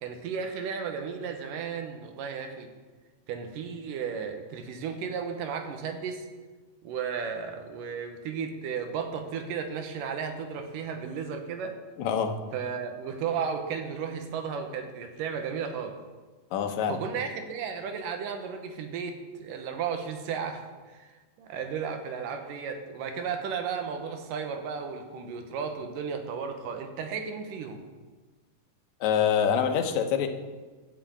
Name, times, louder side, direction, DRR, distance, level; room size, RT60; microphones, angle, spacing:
voice 1, 0.0-2.7 3.3-6.2 6.8-11.8 12.5-16.0 16.9-27.8, right 6 dB, 85° right, 6 dB, 2.6 m, -34 dB
voice 2, 12.0-12.3 16.5-17.0 29.0-30.3, left 8 dB, 70° left, 5 dB, 2.0 m, -25 dB
11.5 x 5.7 x 8.5 m, 1.3 s
omnidirectional pair, 3.8 m